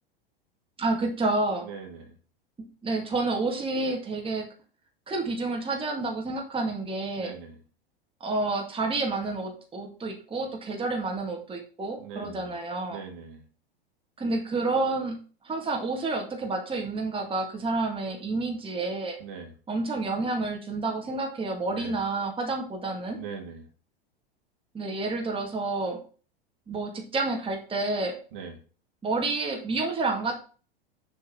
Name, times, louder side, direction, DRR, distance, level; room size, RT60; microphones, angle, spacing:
voice 1, 0.8-1.7 2.8-4.5 5.1-7.3 8.2-13.0 14.2-15.2 15.4-19.2 19.7-23.2 24.7-26.0 26.7-28.2 29.0-30.4, right 3 dB, 15° right, 1 dB, 2.2 m, -29 dB
voice 2, 1.6-2.2 7.2-7.6 12.0-12.5 12.9-13.4 19.2-19.5 21.7-22.0 23.2-23.7 28.3-28.5, right 6 dB, 60° right, 3 dB, 2.3 m, -41 dB
7.0 x 4.5 x 5.9 m, 0.37 s
hypercardioid pair, 90°, 30 cm